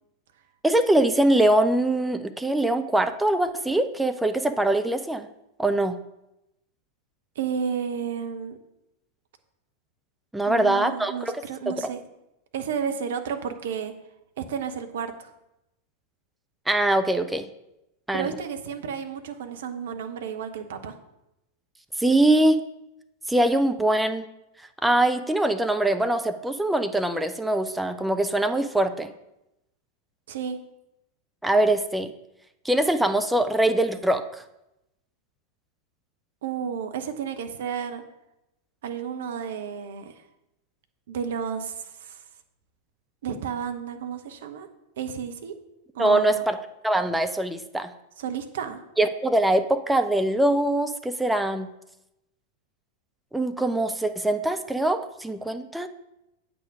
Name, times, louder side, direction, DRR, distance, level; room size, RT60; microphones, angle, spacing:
voice 1, 0.6-5.3 5.6-6.0 10.3-11.4 11.7-11.9 16.7-17.5 18.1-18.3 22.0-22.6 23.3-24.2 24.8-29.1 31.4-32.1 32.6-34.4 46.0-47.9 49.0-51.7 53.3-55.9, right 1 dB, 5° right, 7 dB, 0.5 m, -23 dB
voice 2, 7.4-8.6 10.5-12.0 12.5-13.9 14.4-15.3 18.1-20.9 30.3-30.6 36.4-38.0 38.8-40.1 41.1-42.2 43.2-44.7 45.0-45.5 45.9-46.4 48.2-48.8, right 7 dB, 60° right, 7 dB, 0.9 m, -32 dB
8.4 x 6.2 x 4.8 m, 0.89 s
figure-of-eight pair, 90°, 0 cm